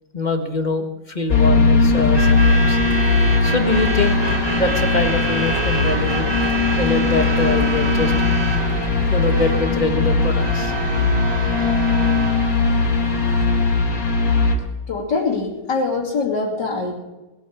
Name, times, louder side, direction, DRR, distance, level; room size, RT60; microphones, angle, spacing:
voice 1, 0.1-2.8 3.4-4.2 4.6-6.3 6.8-8.3 8.7-10.7, left 2 dB, 25° left, 5 dB, 1.5 m, -23 dB
sound 1, 1.3-14.6, left 4 dB, 50° left, 3.4 m, -19 dB
Truck / Alarm, 1.9-13.8, right 3 dB, 40° right, 0.4 m, -28 dB
voice 2, 14.9-16.9, left 4 dB, 70° left, -6 dB, 3.5 m, -23 dB
20.5 x 9.0 x 7.2 m, 1.1 s
omnidirectional pair, 2.0 m